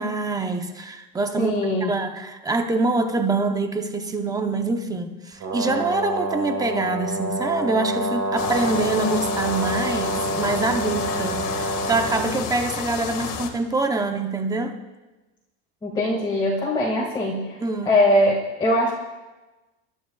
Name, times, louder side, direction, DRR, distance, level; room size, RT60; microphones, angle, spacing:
voice 1, 0.0-1.5 1.8-14.8 17.6-18.0, right 3 dB, 10° right, 6 dB, 0.7 m, -25 dB
voice 2, 1.4-1.9 15.8-17.6 17.9-18.9, left 1 dB, 10° left, -5 dB, 1.9 m, -21 dB
Brass instrument, 5.4-12.4, right 1 dB, 50° right, 4.2 m, -27 dB
sound 1, 8.3-13.5, left 7 dB, 65° left, 1.9 m, -30 dB
23.5 x 12.0 x 2.3 m, 1.1 s
supercardioid pair, 145°, 39 cm